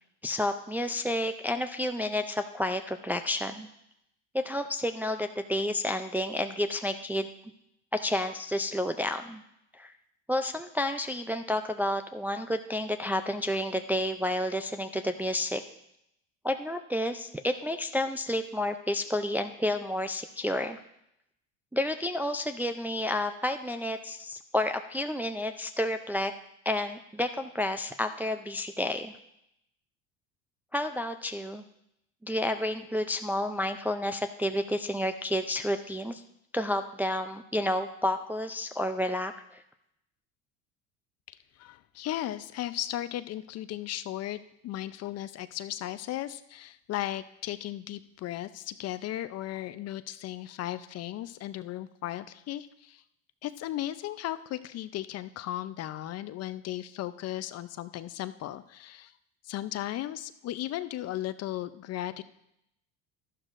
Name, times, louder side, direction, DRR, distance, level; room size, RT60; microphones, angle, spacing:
voice 1, 0.2-3.7 4.3-7.3 7.9-9.4 9.7-9.9 10.3-15.6 16.4-20.8 21.7-26.3 26.7-29.1 30.7-31.6 32.2-36.2 36.5-39.6, left 1 dB, 5° right, 6 dB, 0.3 m, -30 dB
voice 2, 41.3-53.0 53.4-59.1 59.4-62.2, left 13 dB, 45° left, 13 dB, 0.6 m, -36 dB
12.5 x 11.0 x 2.5 m, 0.80 s
supercardioid pair, 100°, 34 cm